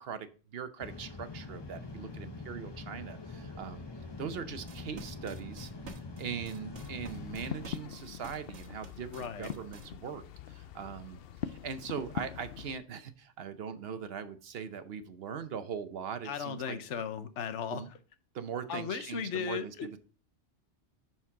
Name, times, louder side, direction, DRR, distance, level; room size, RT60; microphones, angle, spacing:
voice 1, 0.0-3.8 4.2-5.7 6.2-16.8 17.7-17.9 18.3-20.0, right 7 dB, 60° right, 0.9 m, -41 dB
sound 1, 0.8-7.7, left 3 dB, 25° left, 0.8 m, -44 dB
sound 2, 4.5-9.9, right 5 dB, 80° right, 1.4 m, -50 dB
sound 3, 6.7-12.8, left 9 dB, 65° left, 0.7 m, -43 dB
voice 2, 9.1-9.5 16.2-17.9 18.7-19.9, left 7 dB, 85° left, 1.1 m, -36 dB
10.0 x 4.5 x 3.6 m
omnidirectional pair, 1.2 m